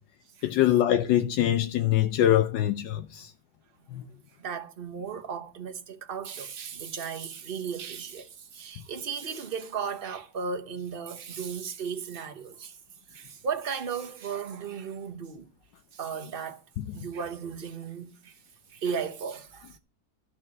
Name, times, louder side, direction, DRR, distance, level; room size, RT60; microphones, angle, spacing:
voice 1, 0.4-3.3 3.9-4.0, left 12 dB, 85° left, 1.4 m, -23 dB
voice 2, 4.4-12.8 13.1-15.5 15.9-16.6 16.9-18.4 18.7-19.8, right 6 dB, 35° right, 1.0 m, -35 dB
13.0 x 4.5 x 7.5 m
omnidirectional pair, 1.9 m